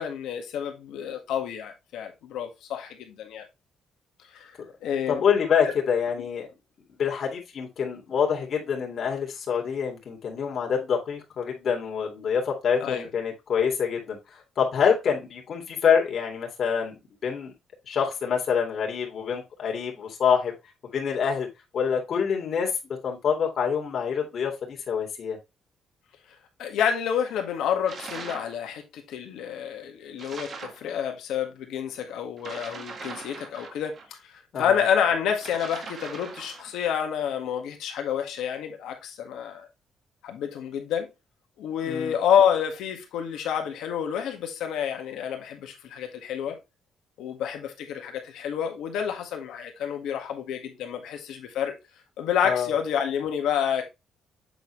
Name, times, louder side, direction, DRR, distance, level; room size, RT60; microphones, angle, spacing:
voice 1, 0.0-3.4 4.3-4.5 4.8-5.2 12.8-13.1 26.6-34.0 34.2-39.7 40.2-41.1 41.6-46.6 47.2-51.7 52.2-53.8, left 8 dB, 85° left, 1.7 m, -28 dB
voice 2, 5.1-6.5 7.0-14.2 14.6-17.5 17.9-20.6 20.9-21.5 21.7-22.7 23.0-25.4 34.5-34.8 41.8-42.2 52.4-52.7, left 7 dB, 55° left, 2.3 m, -26 dB
sound 1, 27.9-28.6 30.2-30.9 32.4-34.1 35.3-36.7, right 4 dB, 55° right, 1.5 m, -40 dB
8.0 x 4.2 x 3.2 m
cardioid pair, 90°, 0 cm